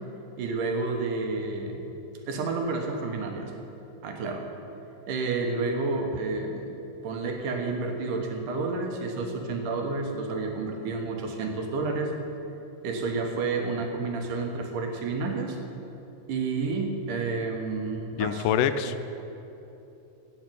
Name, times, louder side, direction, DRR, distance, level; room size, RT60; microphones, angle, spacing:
voice 1, 0.4-1.8 2.3-3.5 4.0-4.5 5.1-12.1 12.8-15.6 16.3-18.6, right 3 dB, 75° right, 3 dB, 2.8 m, -30 dB
voice 2, 18.2-19.1, left 9 dB, 85° left, 10 dB, 2.2 m, -26 dB
16.0 x 6.0 x 9.2 m, 3.0 s
omnidirectional pair, 3.7 m